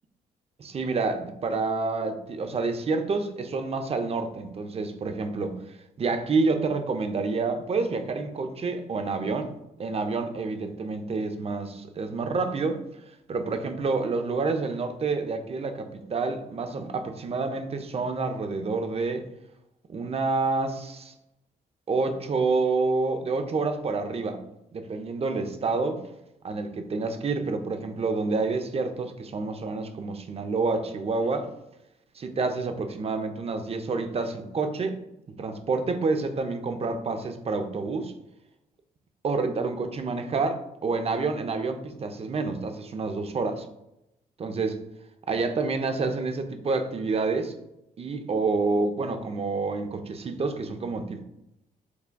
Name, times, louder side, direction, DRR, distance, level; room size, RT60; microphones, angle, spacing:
voice 1, 0.6-5.6 6.0-9.5 9.8-12.8 13.3-19.2 19.9-21.1 21.9-24.4 24.7-26.0 26.4-31.5 32.2-35.0 35.4-38.1 39.2-43.7 44.4-44.8 45.3-47.5 48.0-51.2, right 3 dB, 35° right, 7 dB, 0.5 m, -28 dB
6.0 x 2.2 x 2.2 m, 0.86 s
supercardioid pair, 60°, 17 cm